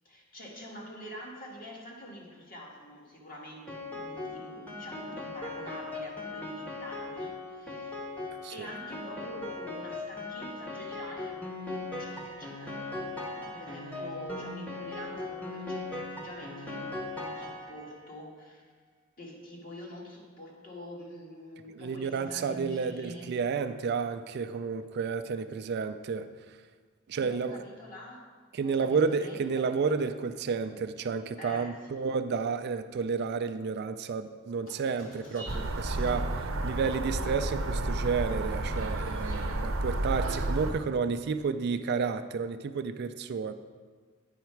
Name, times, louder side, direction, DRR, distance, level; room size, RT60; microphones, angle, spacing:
voice 1, 0.1-8.1 8.5-18.7 19.2-23.4 27.2-28.3 28.6-29.7 31.4-32.0 35.3-36.2 39.2-39.6, equal, 45° left, -2 dB, 1.6 m, -46 dB
Piano, 3.7-18.1, left 2 dB, 5° left, 0.9 m, -39 dB
voice 2, 21.7-26.3 27.1-27.6 28.5-43.5, right 5 dB, 55° right, 10 dB, 0.4 m, -31 dB
Squeak, 34.6-40.0, equal, 80° left, 2.4 m, -53 dB
sound 1, 35.5-40.7, right 1 dB, 80° right, 0.7 m, -31 dB
9.3 x 5.8 x 4.5 m, 1.5 s
head